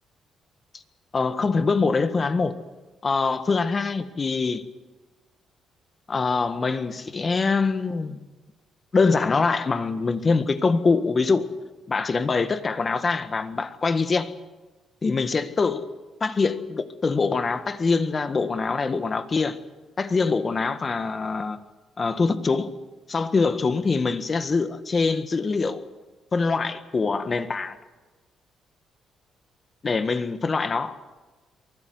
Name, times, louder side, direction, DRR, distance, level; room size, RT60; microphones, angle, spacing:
voice 1, 1.1-2.6 3.0-4.6 6.1-8.2 8.9-11.5 11.9-14.3 15.0-15.8 16.2-19.6 20.0-21.6 22.0-22.7 23.1-25.8 26.3-27.8 29.8-31.0, left 4 dB, 35° left, 1.6 m, -24 dB
23.5 x 16.0 x 9.6 m
cardioid pair, 90°, 0 cm